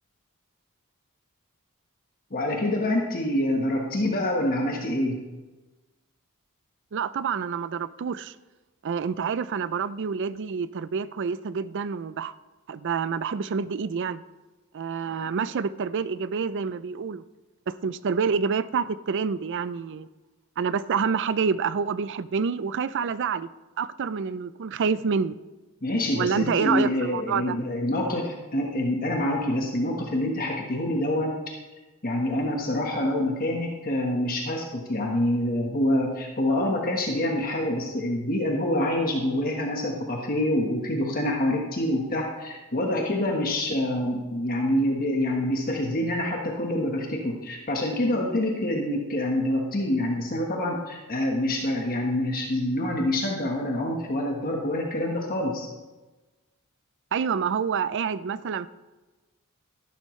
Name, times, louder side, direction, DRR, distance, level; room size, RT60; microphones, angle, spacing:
voice 1, 2.3-5.2 25.8-31.4 32.0-55.7, left 1 dB, 40° left, 0 dB, 1.3 m, -26 dB
voice 2, 6.9-8.3 8.8-12.3 12.7-14.2 14.7-17.2 17.7-20.1 20.6-23.5 23.8-25.3 26.1-27.6 57.1-58.7, right 6 dB, 55° right, 16 dB, 0.4 m, -27 dB
13.5 x 12.0 x 3.2 m, 1.2 s
head